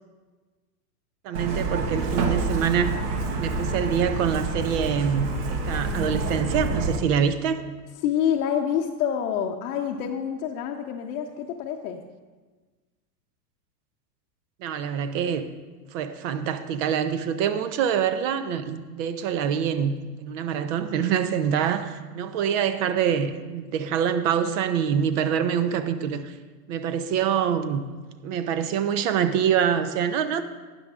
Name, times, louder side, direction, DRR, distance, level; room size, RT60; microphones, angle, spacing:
voice 1, 1.2-2.9 3.4-7.6 14.6-15.5 15.9-26.3 26.7-27.8 28.2-30.4, right 8 dB, 50° right, 10 dB, 0.7 m, -25 dB
Truck, 1.3-7.0, right 3 dB, 65° right, 1.2 m, -28 dB
voice 2, 8.0-12.0, left 9 dB, 65° left, 0 dB, 0.8 m, -27 dB
12.5 x 9.1 x 2.4 m, 1.3 s
hypercardioid pair, 100°, 49 cm